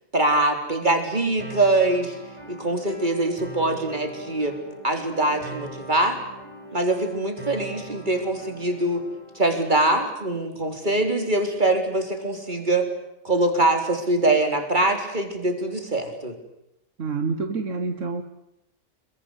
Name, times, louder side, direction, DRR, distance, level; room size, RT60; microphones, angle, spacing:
voice 1, 0.1-2.2 2.5-4.6 4.8-6.2 6.7-9.0 9.3-12.9 13.2-16.4, right 2 dB, 35° right, 5 dB, 4.0 m, -23 dB
sound 1, 1.4-9.4, right 1 dB, 20° left, 5.4 m, -41 dB
voice 2, 17.0-18.2, right 4 dB, 70° right, 7 dB, 1.7 m, -27 dB
26.5 x 22.5 x 8.3 m, 0.86 s
omnidirectional pair, 1.4 m